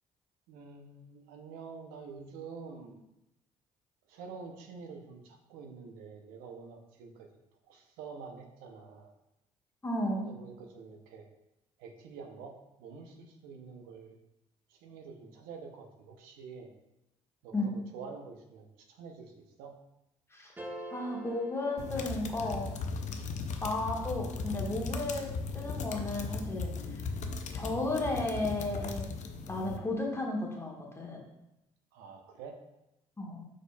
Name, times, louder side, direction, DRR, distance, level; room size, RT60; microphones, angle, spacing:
voice 1, 0.5-3.0 4.1-7.3 7.6-9.1 10.2-11.2 11.8-14.2 14.7-16.7 17.4-19.3 19.6-19.7 31.9-32.6, right 5 dB, 75° right, 4 dB, 0.6 m, -47 dB
voice 2, 9.8-10.3 17.5-17.7 20.3-20.5 20.9-22.7 23.6-26.7 27.5-29.1 29.5-31.2 33.2-33.4, left 2 dB, 15° left, -1 dB, 1.3 m, -34 dB
sound 1, 20.6-22.8, equal, 10° right, 0.9 m, -46 dB
sound 2, 21.8-29.8, left 4 dB, 55° left, 0.6 m, -37 dB
4.9 x 4.2 x 2.2 m, 0.88 s
hypercardioid pair, 55°, 15 cm